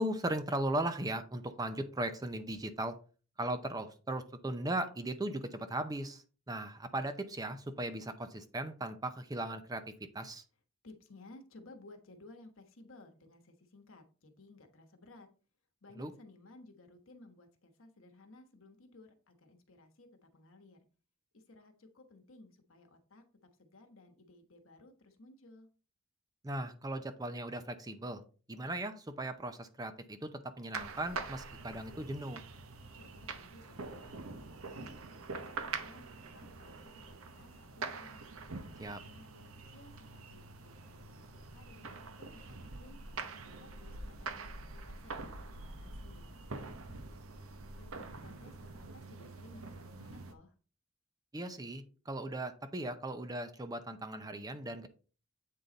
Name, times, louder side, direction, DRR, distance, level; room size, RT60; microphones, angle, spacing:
voice 1, 0.0-3.0 3.4-9.8 10.1-10.4 16.0-16.1 26.4-28.2 28.5-32.4 38.8-39.0 51.3-54.9, right 1 dB, 20° right, 9 dB, 0.5 m, -38 dB
voice 2, 10.8-15.3 15.8-20.8 21.3-23.2 23.6-25.7 32.9-38.2 38.8-45.2 45.6-46.4 47.7-50.5, left 2 dB, 70° left, 6 dB, 1.2 m, -58 dB
sound 1, 30.7-50.3, right 4 dB, 80° right, 0.8 m, -45 dB
8.2 x 3.9 x 3.9 m, 0.38 s
head